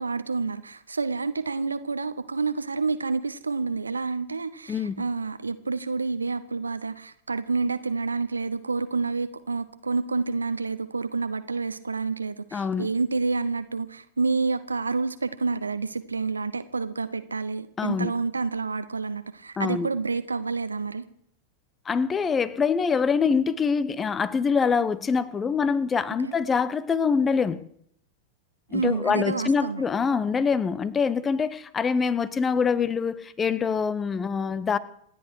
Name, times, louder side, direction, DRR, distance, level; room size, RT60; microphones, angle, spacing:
voice 1, 0.0-21.0 26.2-26.3 28.7-29.8, right 4 dB, 75° right, 0.8 m, -28 dB
voice 2, 4.7-5.0 12.5-12.9 17.8-18.1 19.6-19.9 21.8-27.7 28.7-34.8, left 5 dB, 20° left, 0.9 m, -25 dB
27.5 x 11.0 x 4.7 m
figure-of-eight pair, 90°, 0 cm